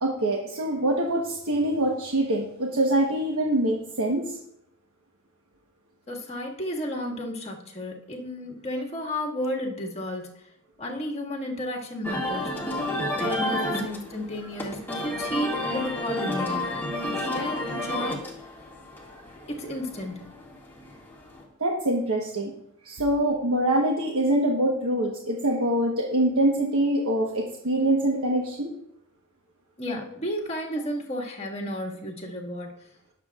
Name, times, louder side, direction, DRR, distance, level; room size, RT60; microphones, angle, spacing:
voice 1, 0.0-4.4 19.1-19.2 21.6-22.5 22.8-28.7, right 1 dB, 75° right, -1 dB, 1.2 m, -24 dB
voice 2, 6.1-10.4 10.8-12.6 13.2-18.3 19.5-20.2 29.8-32.7, left 1 dB, 30° left, -2 dB, 1.9 m, -33 dB
sound 1, 12.0-21.4, left 1 dB, 10° left, 2.0 m, -31 dB
20.5 x 7.3 x 2.4 m, 0.78 s
head